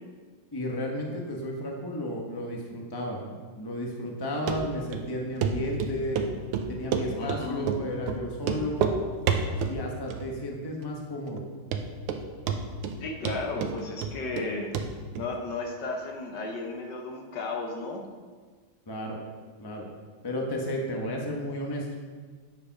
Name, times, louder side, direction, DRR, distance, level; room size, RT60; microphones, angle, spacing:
voice 1, 0.5-6.2 6.7-8.8 9.7-11.4 18.9-19.2 19.6-19.8 20.2-21.9, equal, 20° left, 0 dB, 0.7 m, -33 dB
Run, 4.5-4.6 4.9-5.0 5.4-5.5 5.8-7.4 7.7-7.8 8.1-8.2 8.4-9.0 9.3-9.8 10.1-10.6 10.8-10.9 11.4-11.5 11.7-12.2 12.5-13.0 13.3-14.5 14.7-14.9 15.2-15.3, right 7 dB, 90° right, 1.6 m, -28 dB
voice 2, 7.1-7.7 13.0-14.7 15.1-18.0, left 3 dB, 60° left, 1 dB, 1.5 m, -34 dB
9.7 x 5.0 x 5.8 m, 1.5 s
omnidirectional pair, 2.4 m